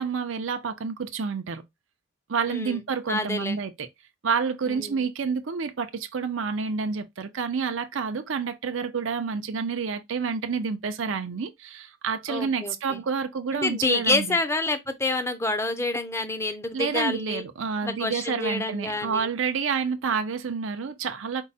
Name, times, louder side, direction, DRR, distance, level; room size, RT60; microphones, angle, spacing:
voice 1, 0.0-1.6 2.3-3.9 4.2-14.4 16.7-21.4, right 5 dB, 70° right, 0.5 m, -29 dB
voice 2, 2.5-3.6 4.6-5.1 12.3-13.0 13.5-17.4 17.8-19.3, left 2 dB, 15° left, 0.6 m, -28 dB
4.6 x 2.1 x 4.1 m
head